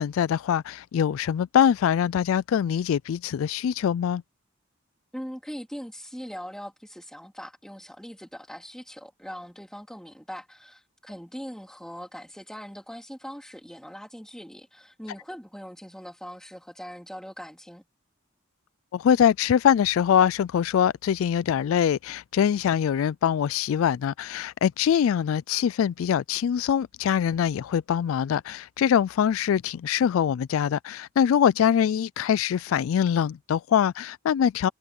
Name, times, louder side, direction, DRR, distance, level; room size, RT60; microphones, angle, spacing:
voice 1, 0.0-4.2 18.9-34.7, left 8 dB, 75° left, 0.3 m, -23 dB
voice 2, 5.1-17.8, equal, 5° left, 3.7 m, -41 dB
head